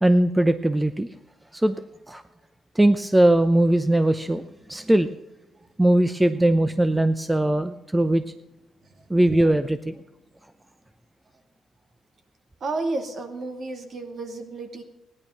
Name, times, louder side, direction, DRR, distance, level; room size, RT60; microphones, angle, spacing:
voice 1, 0.0-1.1 1.5-1.8 2.1-2.2 2.7-5.1 5.8-8.2 9.1-9.9, right 1 dB, 10° right, 10 dB, 0.7 m, -20 dB
voice 2, 12.6-14.8, right 2 dB, 50° right, 5 dB, 2.4 m, -31 dB
16.0 x 11.0 x 5.8 m, 0.95 s
cardioid pair, 90°, 0 cm